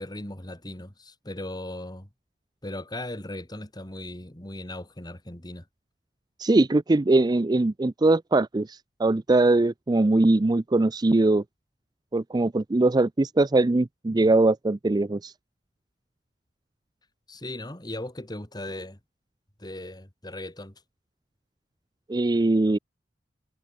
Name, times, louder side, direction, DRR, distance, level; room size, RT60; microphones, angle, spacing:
voice 1, 0.0-2.1 2.6-5.6 17.3-19.0 19.6-20.7, left 1 dB, 25° left, 2.6 m, -38 dB
voice 2, 6.4-11.4 12.1-15.3 22.1-22.8, right 2 dB, 20° right, 0.4 m, -21 dB
head